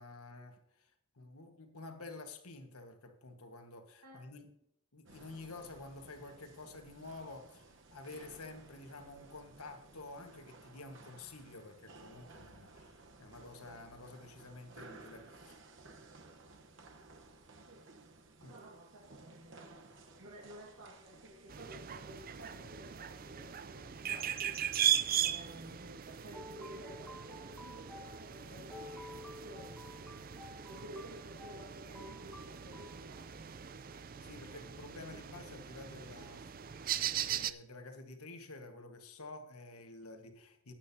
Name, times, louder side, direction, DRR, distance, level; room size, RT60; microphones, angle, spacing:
voice 1, 0.0-4.5 4.9-15.6 18.4-18.6 34.2-36.5 37.2-40.7, left 2 dB, 80° left, 1.5 m, -50 dB
sound 1, 5.1-21.9, right 3 dB, 55° right, 1.1 m, -57 dB
voice 2, 18.5-24.7 25.1-29.8 30.7-33.7, equal, 80° right, 1.9 m, -53 dB
sound 2, 21.5-37.5, right 10 dB, 40° right, 0.4 m, -39 dB
sound 3, 26.3-33.0, left 2 dB, ahead, 0.7 m, -52 dB
17.5 x 8.7 x 2.8 m
head